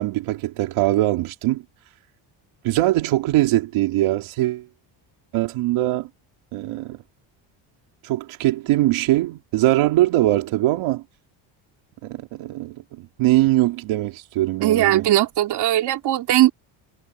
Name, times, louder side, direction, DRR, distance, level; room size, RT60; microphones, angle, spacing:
voice 1, 0.0-1.6 2.6-4.6 5.3-6.1 6.5-7.0 8.0-11.0 12.0-15.1, right 16 dB, 75° right, 2.6 m, -21 dB
voice 2, 14.6-16.5, right 13 dB, 50° right, 2.5 m, -19 dB
cardioid pair, 180°, 49 cm